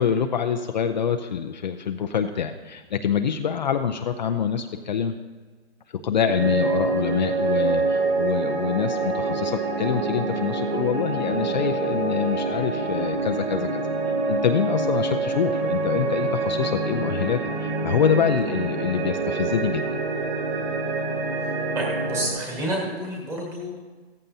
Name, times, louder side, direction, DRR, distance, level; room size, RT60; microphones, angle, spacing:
voice 1, 0.0-5.1 6.0-19.9, left 7 dB, 45° left, 6 dB, 0.5 m, -25 dB
sound 1, 6.3-22.3, right 3 dB, 65° right, 4.4 m, -26 dB
voice 2, 21.7-23.8, right 1 dB, 10° right, -2 dB, 1.6 m, -29 dB
16.0 x 14.5 x 2.7 m, 1.4 s
hypercardioid pair, 165°, 33 cm